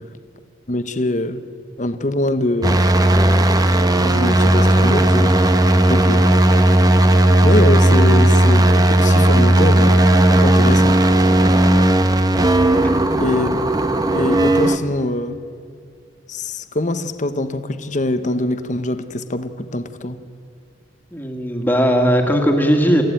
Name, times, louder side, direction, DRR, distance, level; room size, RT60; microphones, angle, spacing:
voice 1, 0.7-1.4 1.8-2.8 4.0-5.4 5.8-6.3 7.4-10.1 10.4-11.0 13.2-13.5 14.1-15.4 16.3-20.2, left 1 dB, 40° left, 1.1 m, -23 dB
sound 1, 2.6-14.8, right 1 dB, 20° right, 1.0 m, -14 dB
voice 2, 21.1-23.0, equal, 10° left, 2.2 m, -17 dB
28.5 x 15.0 x 9.1 m
head